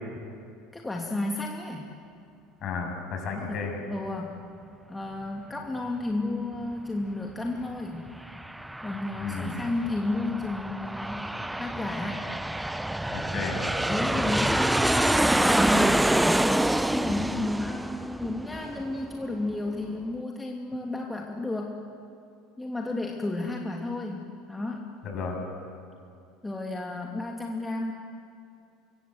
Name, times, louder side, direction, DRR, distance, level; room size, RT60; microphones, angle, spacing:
voice 1, 0.7-1.9 3.4-4.4 4.9-8.0 8.8-11.3 11.5-12.3 13.9-21.8 22.6-24.9 26.4-27.9, left 2 dB, 15° left, 0 dB, 2.6 m, -32 dB
voice 2, 2.6-3.7 9.2-9.6 13.1-13.6 25.0-25.4, left 5 dB, 45° left, 2 dB, 7.4 m, -33 dB
Aircraft, 8.1-19.2, right 1 dB, 5° right, 0.7 m, -27 dB
25.5 x 23.5 x 8.1 m, 2.4 s
hypercardioid pair, 70°, 0 cm